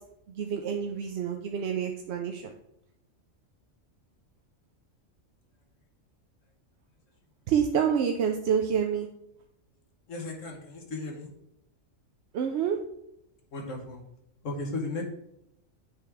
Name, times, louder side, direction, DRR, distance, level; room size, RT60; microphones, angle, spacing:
voice 1, 0.4-2.5 7.5-9.1 12.3-12.8, right 7 dB, 65° right, 3 dB, 0.8 m, -27 dB
voice 2, 10.1-11.3 13.5-14.0 14.4-15.0, left 2 dB, 75° left, 1 dB, 1.5 m, -35 dB
9.2 x 3.5 x 3.3 m, 0.79 s
omnidirectional pair, 1.3 m